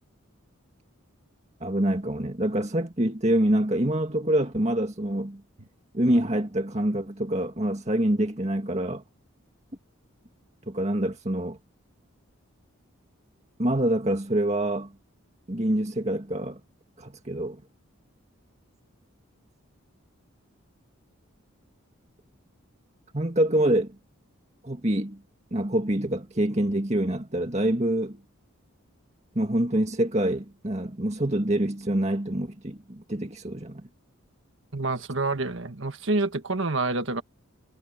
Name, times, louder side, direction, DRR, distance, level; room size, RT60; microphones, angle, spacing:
voice 1, 1.6-5.4 5.9-9.0 10.7-11.6 13.6-14.9 15.5-16.6 17.0-17.6 23.1-24.0 24.6-25.2 25.5-28.2 29.4-33.8, right 1 dB, 30° right, 2.1 m, -26 dB
voice 2, 34.7-37.2, right 3 dB, 60° right, 1.6 m, -27 dB
head